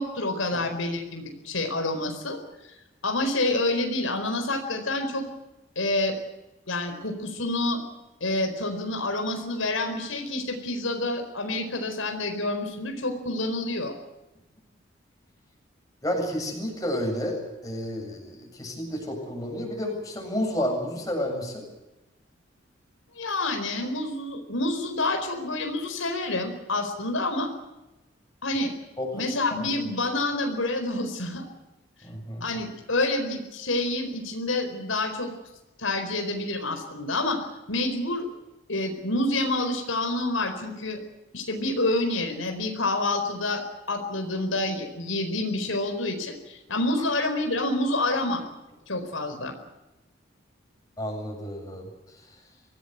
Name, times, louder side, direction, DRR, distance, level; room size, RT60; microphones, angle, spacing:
voice 1, 0.0-2.4 2.6-2.8 3.0-5.3 5.8-6.2 6.7-7.8 8.2-13.9 23.1-27.5 28.4-28.7 29.1-31.5 32.4-35.3 35.8-38.3 38.7-41.0 41.3-48.5 48.9-49.5, left 2 dB, 85° left, 5 dB, 4.5 m, -28 dB
voice 2, 16.0-21.7 29.0-29.2 29.6-29.7 32.0-32.5 51.0-51.9, equal, 20° left, 1 dB, 7.6 m, -31 dB
24.5 x 17.5 x 8.1 m, 1.0 s
head